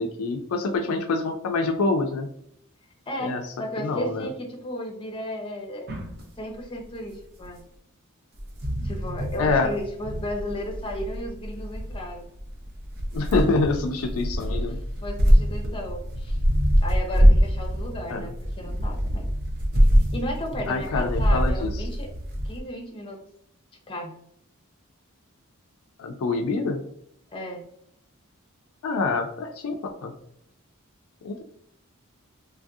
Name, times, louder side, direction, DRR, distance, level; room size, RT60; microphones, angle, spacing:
voice 1, 0.0-2.3 3.2-3.4 3.8-4.3 9.4-9.7 13.1-14.8 18.1-18.3 20.7-21.7 26.0-26.8 28.8-30.2 31.2-31.4, left 3 dB, 70° left, 5 dB, 0.4 m, -26 dB
voice 2, 3.1-5.9 6.4-7.6 8.8-12.3 14.5-16.4 16.8-19.3 19.9-22.1 22.4-23.2 23.9-24.2 27.3-27.7, equal, 25° left, 1 dB, 0.6 m, -34 dB
sound 1, 5.9-6.2 7.4-7.5 8.3-22.6, equal, 45° right, 0.7 m, -24 dB
3.2 x 2.6 x 2.3 m, 0.72 s
head